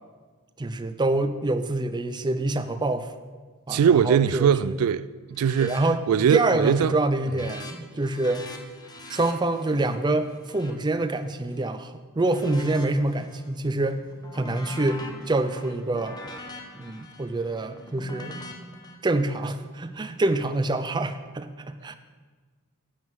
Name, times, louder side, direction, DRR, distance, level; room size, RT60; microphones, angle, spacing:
voice 1, 0.6-3.1 3.7-4.8 5.6-6.0 6.3-8.5 9.1-14.0 14.3-16.2 16.7-18.4 19.0-21.9, right 2 dB, 20° right, 0.5 m, -26 dB
voice 2, 3.7-6.9, right 7 dB, 80° right, 0.3 m, -21 dB
sound 1, 5.3-5.8 6.1-6.5 6.8-11.7 12.2-13.5 13.9-18.9, left 2 dB, 20° left, 0.9 m, -44 dB
11.5 x 7.5 x 4.7 m
head